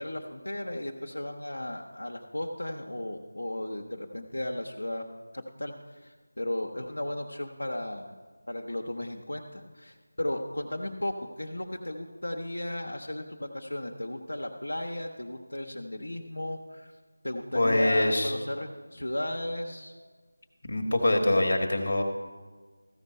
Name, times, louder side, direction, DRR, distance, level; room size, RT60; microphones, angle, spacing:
voice 1, 0.0-5.0 5.3-5.7 6.0-8.1 8.5-16.9 17.2-19.9, left 1 dB, 85° left, 1 dB, 1.0 m, -35 dB
voice 2, 17.5-18.3 20.6-22.0, left 1 dB, 55° left, 3 dB, 1.5 m, -24 dB
14.5 x 5.5 x 5.4 m, 1.4 s
figure-of-eight pair, 170°, 0 cm